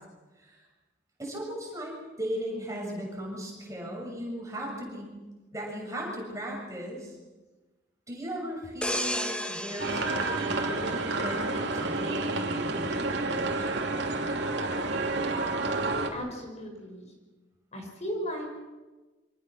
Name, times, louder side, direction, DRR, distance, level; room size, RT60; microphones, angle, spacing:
voice 1, 1.2-5.1 5.5-7.2 8.1-13.7, equal, 15° right, -1 dB, 7.0 m, -37 dB
sound 1, 8.8-11.5 11.9-12.2, left 1 dB, 5° left, 1.7 m, -34 dB
sound 2, 9.8-16.1, right 2 dB, 60° right, 3.3 m, -29 dB
voice 2, 16.1-17.1 17.7-18.5, equal, 35° left, 2 dB, 5.9 m, -36 dB
27.0 x 26.0 x 6.3 m, 1.2 s
head